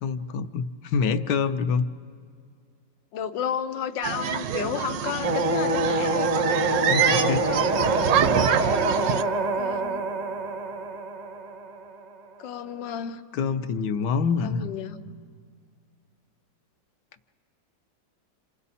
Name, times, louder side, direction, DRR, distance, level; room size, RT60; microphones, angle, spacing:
voice 1, 0.0-1.9 6.9-7.4 13.3-14.7, left 5 dB, 75° left, 9 dB, 1.3 m, -26 dB
voice 2, 3.1-6.3 6.8-7.7 9.5-10.1 12.4-13.2 14.4-15.0, left 8 dB, 90° left, 9 dB, 1.5 m, -32 dB
sound 1, 4.0-9.2, right 8 dB, 80° right, 1.4 m, -26 dB
sound 2, 5.2-12.2, right 2 dB, 35° right, 0.6 m, -26 dB
29.5 x 27.0 x 4.2 m, 2.2 s
omnidirectional pair, 1.9 m